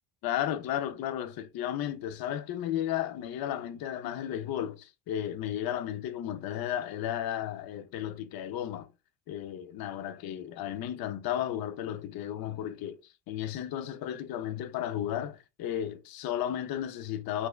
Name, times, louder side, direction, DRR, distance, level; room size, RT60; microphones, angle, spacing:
voice 1, 0.2-8.9 9.3-17.5, left 11 dB, 50° left, 0.5 m, -34 dB
4.6 x 2.2 x 2.3 m
cardioid pair, 120°, 48 cm